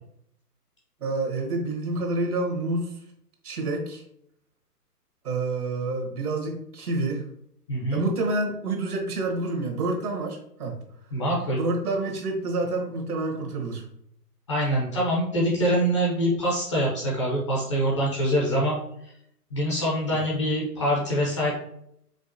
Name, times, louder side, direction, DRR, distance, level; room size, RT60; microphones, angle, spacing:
voice 1, 1.0-2.9 3.4-4.0 5.2-7.3 7.9-10.8 11.6-13.8 20.1-20.2, right 2 dB, 65° right, 1 dB, 1.3 m, -28 dB
voice 2, 7.7-8.0 11.1-11.6 14.5-18.7 19.5-21.5, equal, 20° left, -4 dB, 0.6 m, -24 dB
5.0 x 2.2 x 2.7 m, 0.72 s
hypercardioid pair, 145°, 48 cm